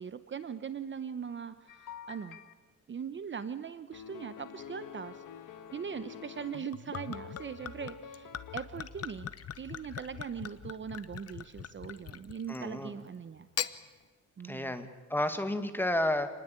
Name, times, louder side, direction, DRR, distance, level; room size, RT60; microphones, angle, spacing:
voice 1, 0.0-2.4 2.9-5.2 5.7-13.5 14.4-14.7, right 7 dB, 40° right, 12 dB, 0.8 m, -40 dB
sound 1, 1.7-2.5 3.9-6.6 6.9-8.6, left 8 dB, 80° left, 1.6 m, -47 dB
Gurgling / Chink clink / Liquid, 6.5-12.7 13.4-13.8, left 9 dB, 50° left, 1.0 m, -41 dB
voice 2, 12.5-12.9 14.4-16.3, left 1 dB, 5° left, 8 dB, 1.8 m, -31 dB
28.0 x 20.0 x 8.8 m, 1.3 s
wide cardioid pair, 145°, 31 cm